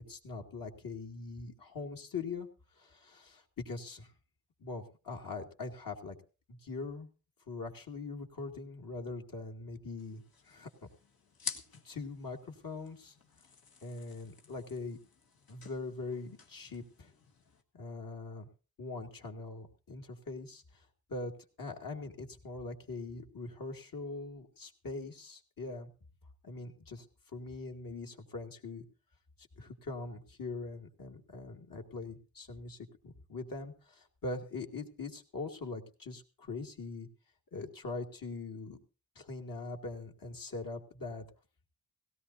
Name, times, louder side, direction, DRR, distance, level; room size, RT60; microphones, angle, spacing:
voice 1, 0.0-2.5 2.8-4.1 4.6-6.2 6.5-7.1 7.5-10.7 11.8-13.2 13.8-15.0 15.5-17.1 17.7-18.5 18.8-20.8 21.1-21.3 21.6-25.9 26.4-27.1 27.3-28.8 29.6-32.8 33.0-37.1 37.5-38.8 39.2-41.3, left 3 dB, 70° left, 2 dB, 2.3 m, -42 dB
sound 1, 10.0-17.6, left 5 dB, 90° left, 1.7 m, -49 dB
17.5 x 17.0 x 2.7 m, 0.33 s
wide cardioid pair, 80°, 35 cm